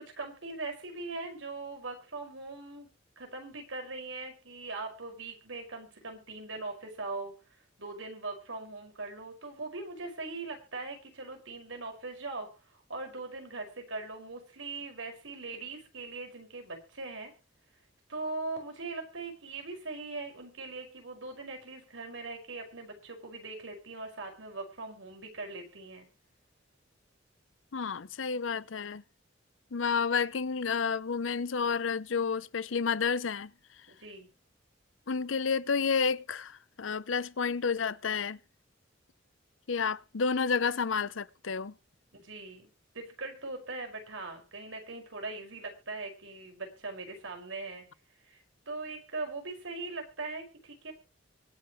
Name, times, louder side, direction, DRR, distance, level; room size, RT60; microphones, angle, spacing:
voice 1, 0.0-2.9 3.2-17.3 18.1-26.1 33.9-34.3 42.1-47.9 48.2-50.9, right 3 dB, 90° right, 5.5 m, -41 dB
voice 2, 27.7-29.0 29.7-33.5 35.1-38.4 39.7-41.7, left 5 dB, 85° left, 0.7 m, -30 dB
24.0 x 8.5 x 3.1 m
head